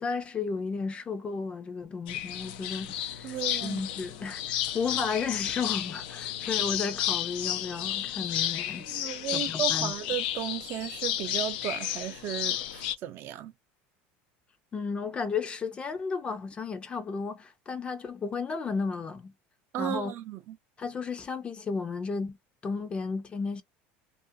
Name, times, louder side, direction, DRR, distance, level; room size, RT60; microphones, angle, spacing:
voice 1, 0.0-9.9 14.7-19.3 19.8-20.1 20.8-22.4 22.6-23.6, left 5 dB, 20° left, 0.5 m, -33 dB
sound 1, 2.1-13.0, left 12 dB, 85° left, 0.4 m, -32 dB
voice 2, 3.2-3.8 8.9-13.5 19.7-20.6, right 12 dB, 45° right, 0.4 m, -35 dB
2.5 x 2.1 x 2.6 m
cardioid pair, 145°, 5 cm